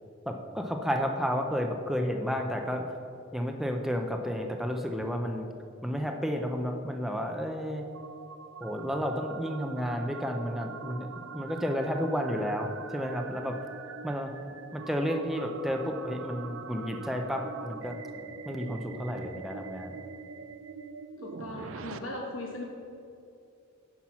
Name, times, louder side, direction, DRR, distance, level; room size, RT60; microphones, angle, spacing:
voice 1, 0.3-2.9 3.3-5.5 5.8-7.8 8.6-13.6 14.0-14.3 14.7-18.0 18.5-19.9, equal, ahead, 3 dB, 0.5 m, -31 dB
sound 1, 6.9-22.0, right 5 dB, 75° right, 0.5 m, -44 dB
voice 2, 21.2-22.7, left 2 dB, 85° left, -1 dB, 1.2 m, -38 dB
10.0 x 5.9 x 5.8 m, 2.6 s
head